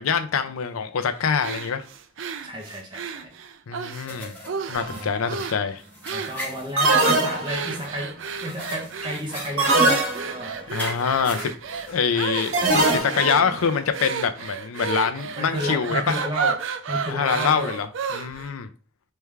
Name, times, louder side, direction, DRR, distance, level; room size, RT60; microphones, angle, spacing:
voice 1, 0.0-1.8 3.7-4.4 4.7-5.8 10.7-11.5 11.9-12.5 12.9-16.2 17.1-17.9 18.1-18.7, left 6 dB, 85° left, 0.5 m, -24 dB
sound 1, 1.4-4.1 4.5-4.9 5.3-5.6 6.0-6.4 6.8-18.5, right 6 dB, 65° right, 0.4 m, -31 dB
voice 2, 2.4-3.3 4.9-5.1 6.1-10.7 13.1-13.5 15.3-17.8, equal, 20° right, 0.9 m, -32 dB
sound 2, 4.1-13.0, left 1 dB, 5° left, 1.2 m, -40 dB
sound 3, 4.7-5.1 6.8-7.8 9.6-10.6 12.5-13.4, right 2 dB, 80° right, 1.6 m, -21 dB
3.4 x 3.3 x 3.2 m
head